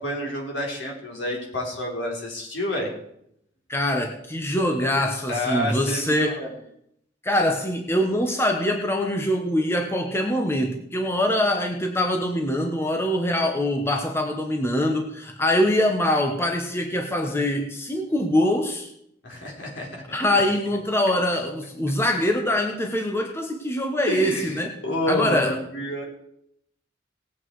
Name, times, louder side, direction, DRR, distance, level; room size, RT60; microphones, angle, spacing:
voice 1, 0.0-2.9 5.3-6.5 19.2-20.4 24.1-26.0, left 1 dB, 70° left, -2 dB, 4.2 m, -29 dB
voice 2, 3.7-6.3 7.2-18.9 20.1-24.7 25.1-25.5, left 1 dB, 15° left, 3 dB, 1.1 m, -23 dB
18.5 x 8.2 x 4.8 m, 0.75 s
head